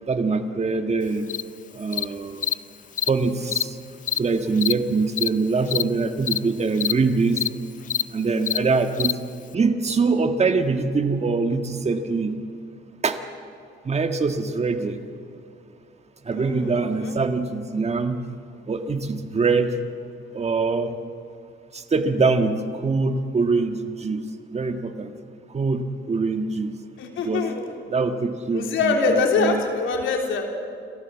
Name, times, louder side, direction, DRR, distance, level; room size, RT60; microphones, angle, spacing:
voice 1, 0.0-1.3 1.7-2.4 3.1-3.8 4.1-7.4 8.1-9.1 9.5-12.4 13.0-13.2 13.8-15.0 16.2-18.2 18.7-19.7 20.3-20.9 21.7-24.2 24.5-25.1 25.5-26.7 27.2-27.5 27.9-29.6, right 4 dB, 35° right, 7 dB, 1.7 m, -23 dB
Cricket, 1.3-1.4 1.9-2.0 2.4-2.5 3.0-3.1 3.5-3.6 4.1-4.2 4.6-4.7 5.2-5.3 5.7-5.8 6.3-6.4 6.8-6.9 7.4-7.5 7.9-8.0 8.5-8.6 9.0-9.1, left 9 dB, 40° left, 0.4 m, -24 dB
voice 2, 16.3-17.2 27.0-27.7 28.5-30.4, left 4 dB, 80° left, 2 dB, 3.4 m, -24 dB
30.0 x 14.0 x 7.4 m, 2.5 s
cardioid pair, 90°, 20 cm